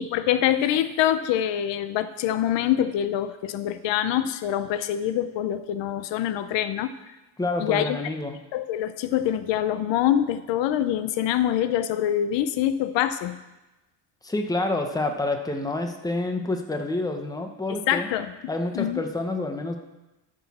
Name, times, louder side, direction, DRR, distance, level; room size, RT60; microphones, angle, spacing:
voice 1, 0.0-6.9 7.6-8.0 8.5-13.4 17.9-18.3 18.7-19.0, left 11 dB, 80° left, 12 dB, 0.6 m, -25 dB
voice 2, 7.4-8.4 14.2-18.1 18.5-19.8, left 2 dB, 10° left, 4 dB, 0.9 m, -28 dB
13.0 x 6.3 x 4.2 m, 1.0 s
cardioid pair, 130°, 43 cm